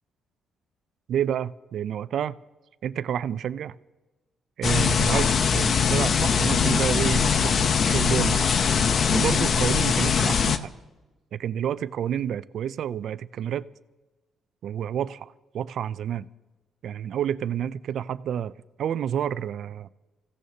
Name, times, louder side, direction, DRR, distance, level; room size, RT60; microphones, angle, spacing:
voice 1, 1.1-2.4 2.8-3.8 4.6-7.6 7.9-8.5 9.1-10.7 11.3-13.7 14.6-16.3 16.8-18.5 18.8-19.9, right 9 dB, 70° right, 16 dB, 0.4 m, -29 dB
sound 1, 4.6-10.6, left 6 dB, 55° left, 0.7 m, -22 dB
27.0 x 15.5 x 2.8 m, 1.1 s
cardioid pair, 90°, 0 cm